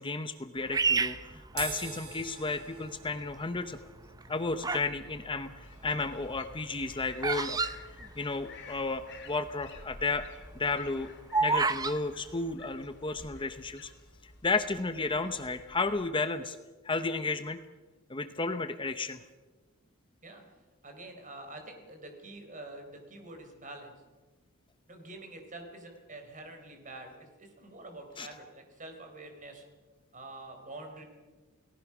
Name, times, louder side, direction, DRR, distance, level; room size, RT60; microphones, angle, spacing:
voice 1, 0.0-3.8 4.3-7.6 8.2-10.3 10.6-11.1 11.4-13.9 14.2-16.6 16.8-17.6 18.1-19.2 28.2-28.3, left 3 dB, 25° left, 9 dB, 0.8 m, -33 dB
Bird vocalization bird call bird song, 0.7-2.2 2.9-3.3 4.0-5.0 5.3-8.7 9.0-9.1 9.3-9.6 10.1-12.0, right 4 dB, 15° right, 0.7 m, -30 dB
sound 1, 1.5-8.1, right 7 dB, 80° right, 4.9 m, -46 dB
sound 2, 5.6-16.1, left 3 dB, 55° left, 2.9 m, -52 dB
voice 2, 20.8-23.9 24.9-29.6 30.1-31.0, right 2 dB, 35° right, 5 dB, 4.5 m, -46 dB
29.5 x 18.5 x 6.1 m, 1.3 s
head